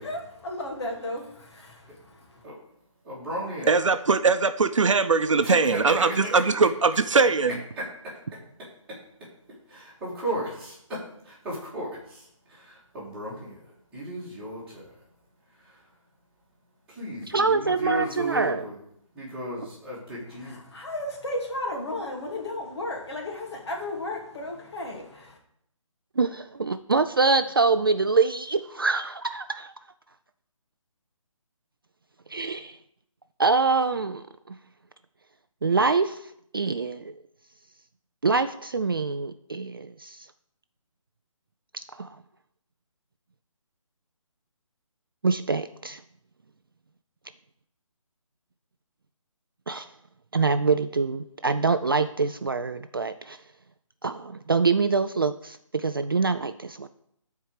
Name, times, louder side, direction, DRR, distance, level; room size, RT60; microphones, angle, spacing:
voice 1, 0.0-2.5 20.4-25.4, left 1 dB, 50° left, 2.7 m, -34 dB
voice 2, 3.0-3.7 5.4-6.3 7.8-8.2 8.9-9.3 9.7-15.1 15.5-16.0 16.9-18.8 19.1-20.6, equal, 5° right, 2.0 m, -35 dB
voice 3, 3.7-7.5, right 4 dB, 65° right, 0.8 m, -21 dB
voice 4, 17.3-18.6 26.2-29.7 32.3-32.8 33.4-34.5 35.6-36.2 36.5-37.1 38.2-40.3 41.9-42.1 45.2-46.0 49.7-49.9 50.3-53.4 54.0-56.9, right 4 dB, 40° right, 0.4 m, -25 dB
12.0 x 4.6 x 6.5 m
hypercardioid pair, 175°, 17 cm